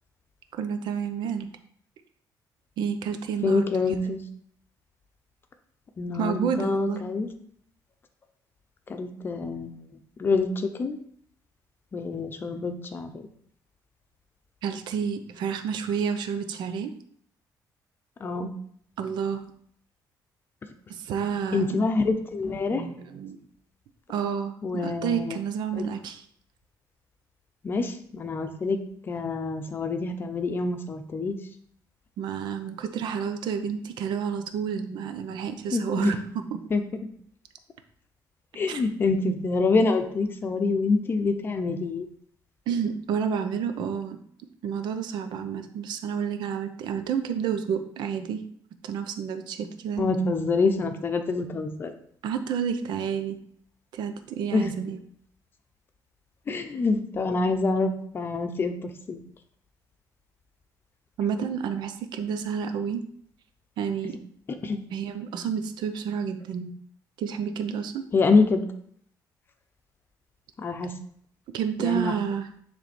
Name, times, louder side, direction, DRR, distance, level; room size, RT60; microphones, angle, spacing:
voice 1, 0.5-1.5 2.8-3.7 6.1-7.0 14.6-16.9 19.0-19.4 20.9-21.8 22.7-23.4 24.1-26.2 32.2-36.6 38.7-38.8 42.7-44.2 44.6-48.4 48.8-50.1 52.2-53.4 53.9-55.0 61.2-63.0 63.8-64.2 64.9-66.7 67.2-68.1 71.5-72.5, right 7 dB, 75° right, 8 dB, 0.8 m, -30 dB
voice 2, 3.4-4.2 6.0-7.3 8.9-9.8 10.2-11.0 11.9-13.3 18.2-18.5 21.5-22.8 24.6-25.4 25.7-25.9 27.6-28.8 29.1-31.4 35.7-36.1 36.7-36.8 38.5-42.1 50.0-51.9 54.5-54.8 56.5-59.2 64.6-64.8 68.1-68.7 70.6-70.9 71.8-72.1, left 3 dB, 30° left, 7 dB, 0.7 m, -26 dB
10.0 x 3.4 x 4.3 m, 0.63 s
cardioid pair, 160°, 8 cm